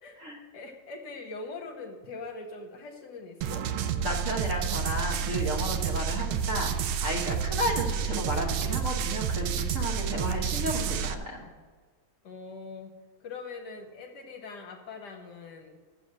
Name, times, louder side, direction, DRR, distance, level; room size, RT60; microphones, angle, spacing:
voice 1, 0.5-3.7 7.8-8.0 10.0-10.4 12.2-12.9 13.2-15.8, left 3 dB, 60° left, 3 dB, 1.4 m, -42 dB
sound 1, 3.4-11.1, right 7 dB, 85° right, 1.4 m, -30 dB
voice 2, 4.0-6.7 7.0-11.5, equal, 45° right, 0 dB, 1.4 m, -33 dB
7.5 x 7.1 x 7.5 m, 1.5 s
omnidirectional pair, 2.2 m